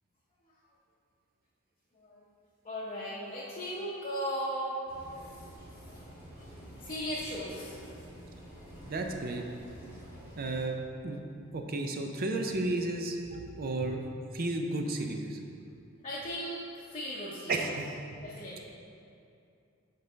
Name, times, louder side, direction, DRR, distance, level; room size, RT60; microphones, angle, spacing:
voice 1, 1.9-2.3 2.6-4.8 5.1-5.2 5.9-6.0 6.3-6.5 6.8-7.8 16.0-17.7 18.2-18.6, equal, 30° left, -7 dB, 0.7 m, -37 dB
sound 1, 4.9-10.7, equal, 10° right, 1.4 m, -49 dB
voice 2, 8.9-9.4 10.4-10.8 11.0-11.2 11.5-14.0 14.3-15.4 17.5-18.2, right 2 dB, 45° right, 3 dB, 0.5 m, -33 dB
5.3 x 3.9 x 5.6 m, 2.5 s
head